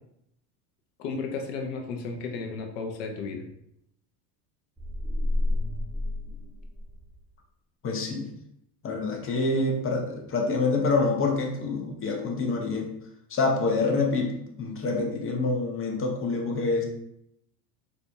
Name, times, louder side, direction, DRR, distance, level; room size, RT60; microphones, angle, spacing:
voice 1, 1.0-3.4, left 4 dB, 80° left, 2 dB, 0.8 m, -33 dB
sound 1, 4.8-7.2, left 2 dB, 10° right, 0.4 m, -30 dB
voice 2, 7.8-8.3 8.8-12.9 13.3-16.8, left 3 dB, 25° left, 1 dB, 0.8 m, -26 dB
4.1 x 2.6 x 2.3 m, 0.77 s
supercardioid pair, 95°, 48 cm